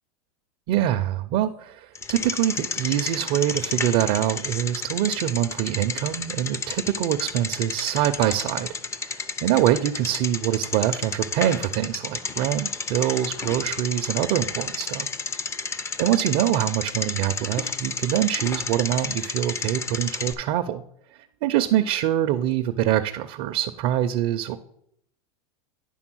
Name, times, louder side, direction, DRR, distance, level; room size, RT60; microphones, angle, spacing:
voice 1, 0.7-8.7 9.0-15.1 16.0-20.8 21.1-24.6, right 12 dB, 50° right, 7 dB, 0.5 m, -24 dB
Bicycle, 1.9-20.3, left 4 dB, 15° left, 0.4 m, -32 dB
10.0 x 3.6 x 6.1 m, 0.72 s
supercardioid pair, 130°, 19 cm